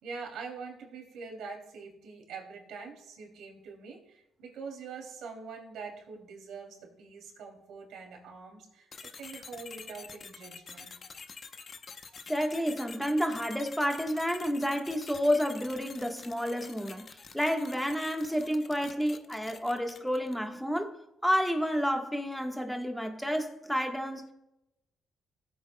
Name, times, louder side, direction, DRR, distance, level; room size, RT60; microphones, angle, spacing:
voice 1, 0.0-11.0, right 5 dB, 80° right, 2.9 m, -44 dB
sound 1, 8.9-20.5, left 5 dB, 45° left, 0.8 m, -48 dB
voice 2, 12.3-21.0 21.2-24.2, equal, ahead, 1.4 m, -30 dB
17.5 x 8.0 x 2.3 m
cardioid pair, 90°, 0 cm